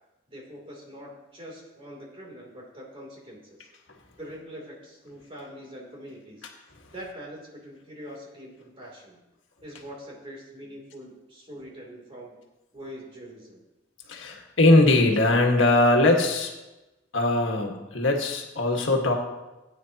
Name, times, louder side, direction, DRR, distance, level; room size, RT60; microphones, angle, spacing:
voice 1, 0.3-3.7 4.2-6.5 6.9-9.2 9.6-12.3 12.7-13.6, equal, 30° right, -2 dB, 3.1 m, -43 dB
voice 2, 14.1-16.5 17.1-19.2, left 2 dB, 75° left, 1 dB, 1.7 m, -21 dB
17.0 x 9.4 x 2.9 m, 1.0 s
head